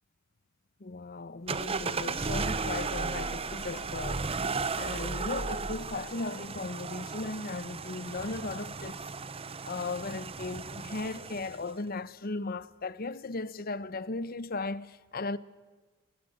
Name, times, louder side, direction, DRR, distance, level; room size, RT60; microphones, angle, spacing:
voice 1, 0.8-4.3 4.8-9.0 9.6-15.4, left 3 dB, 45° left, 0.8 m, -37 dB
sound 1, 1.5-11.7, right 4 dB, 25° right, 0.7 m, -35 dB
29.5 x 17.5 x 7.8 m
head